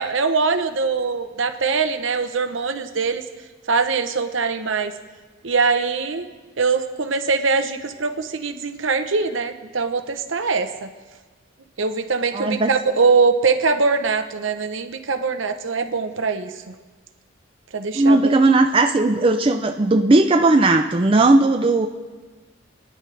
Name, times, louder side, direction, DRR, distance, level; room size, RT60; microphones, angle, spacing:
voice 1, 0.0-3.2 3.7-4.9 5.4-6.3 6.6-10.9 11.8-16.7 17.7-18.3, right 4 dB, 70° right, 8 dB, 0.9 m, -22 dB
voice 2, 12.3-12.7 17.9-21.9, right 2 dB, 25° right, 4 dB, 0.4 m, -17 dB
26.5 x 10.0 x 3.3 m, 1.3 s
head